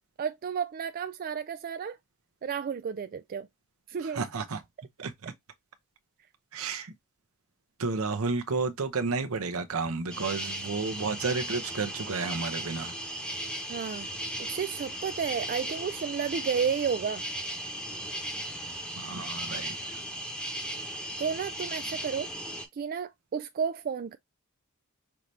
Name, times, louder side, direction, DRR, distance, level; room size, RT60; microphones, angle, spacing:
voice 1, 0.2-2.0 2.4-3.5 3.9-4.2 13.7-14.1 14.4-17.2 21.2-22.3 22.7-24.2, right 7 dB, 45° right, 0.3 m, -32 dB
voice 2, 4.0-4.6 5.0-5.3 6.5-6.9 7.8-12.9 19.0-20.0, right 4 dB, 75° right, 0.8 m, -32 dB
sound 1, 10.1-22.7, equal, 5° left, 1.1 m, -36 dB
5.7 x 2.7 x 3.2 m
head